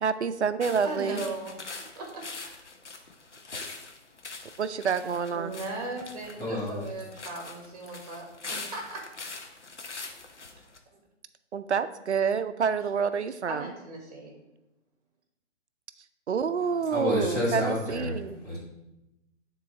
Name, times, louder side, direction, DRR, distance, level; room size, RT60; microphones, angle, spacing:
voice 1, 0.0-1.2 4.6-5.6 11.5-13.7 16.3-18.4, right 6 dB, 70° right, 12 dB, 0.5 m, -28 dB
sound 1, 0.6-10.8, left 3 dB, 75° left, 0.9 m, -43 dB
voice 2, 0.8-1.5 1.9-2.6 5.3-9.1 13.4-14.3 16.8-16.9, right 2 dB, 30° right, 1 dB, 1.4 m, -38 dB
voice 3, 6.4-6.8 16.9-18.2 18.4-18.6, left 1 dB, 10° left, -8 dB, 1.5 m, -29 dB
9.0 x 3.9 x 3.1 m, 0.93 s
figure-of-eight pair, 135°, 36 cm